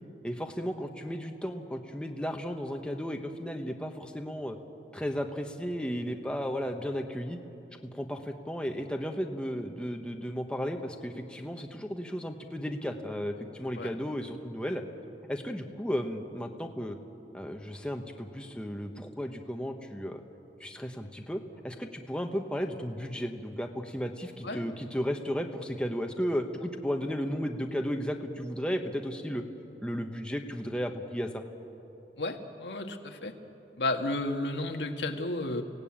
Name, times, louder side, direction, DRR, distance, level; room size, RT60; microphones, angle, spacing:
voice 1, 0.2-4.6 4.9-7.4 7.9-14.8 15.3-17.0 17.3-20.2 20.6-29.4 29.8-31.4, equal, 5° left, 3 dB, 1.1 m, -34 dB
voice 2, 32.2-33.3 33.8-35.6, left 2 dB, 85° left, 4 dB, 1.8 m, -32 dB
30.0 x 17.5 x 8.8 m, 3.0 s
head